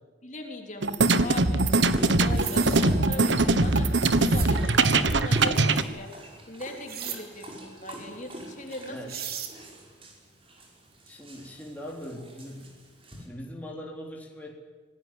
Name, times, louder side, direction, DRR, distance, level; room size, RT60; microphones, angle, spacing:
voice 1, 0.2-1.7 2.2-6.1 6.5-9.1, left 2 dB, 40° left, 2 dB, 3.6 m, -40 dB
sound 1, 0.8-5.8, right 3 dB, 70° right, 1.4 m, -22 dB
Dog, 1.7-13.3, right 1 dB, 30° right, 5.4 m, -43 dB
sound 2, 2.2-2.8 4.1-4.5 6.9-7.2 8.7-8.8 9.1-9.5, right 9 dB, 50° right, 3.1 m, -37 dB
voice 2, 8.9-9.2 11.1-12.8 13.3-14.6, equal, 10° left, -1 dB, 3.9 m, -41 dB
26.5 x 19.0 x 9.3 m, 1.5 s
head